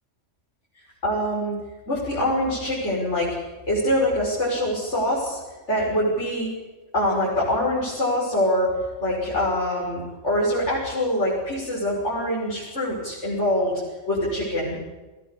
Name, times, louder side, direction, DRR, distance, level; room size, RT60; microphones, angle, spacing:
voice 1, 1.0-1.5 1.9-3.4 3.7-5.4 5.7-6.5 6.9-8.7 9.0-13.8 14.1-14.8, left 1 dB, 70° left, -6 dB, 6.7 m, -24 dB
21.5 x 17.0 x 8.5 m, 1.2 s
omnidirectional pair, 1.2 m